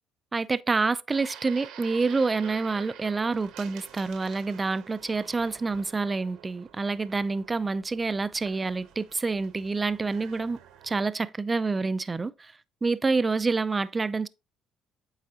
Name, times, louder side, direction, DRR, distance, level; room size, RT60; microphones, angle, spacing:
voice 1, 0.3-10.6 10.8-12.5 12.8-14.3, right 3 dB, 25° right, 0.3 m, -27 dB
sound 1, 1.1-11.0, right 9 dB, 80° right, 0.9 m, -49 dB
8.5 x 4.0 x 2.8 m
supercardioid pair, 80°, 0 cm